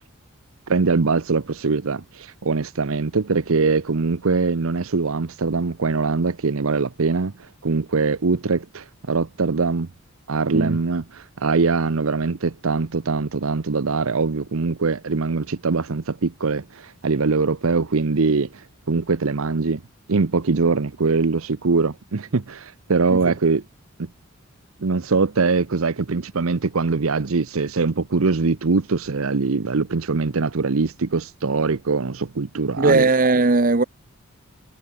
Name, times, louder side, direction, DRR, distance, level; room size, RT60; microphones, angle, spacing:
voice 1, 0.7-7.3 7.6-9.9 10.3-19.8 20.1-23.6 24.0-24.1 24.8-33.1, right 4 dB, 70° right, 0.8 m, -22 dB
voice 2, 32.8-33.8, right 3 dB, 40° right, 0.9 m, -18 dB
head